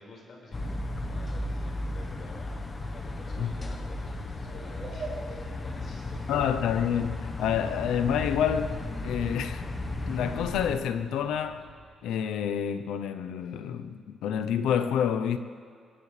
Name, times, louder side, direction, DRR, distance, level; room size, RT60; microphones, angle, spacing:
voice 1, 0.0-6.3, left 2 dB, 55° left, 5.2 m, -50 dB
sound 1, 0.5-10.8, left 2 dB, 30° left, 1.2 m, -35 dB
sound 2, 4.4-11.9, right 3 dB, 45° right, 4.5 m, -47 dB
voice 2, 6.3-8.8 9.0-9.7 10.1-11.6 12.0-15.4, left 8 dB, 85° left, 0.8 m, -28 dB
23.0 x 15.0 x 3.4 m
cardioid pair, 90°, 0 cm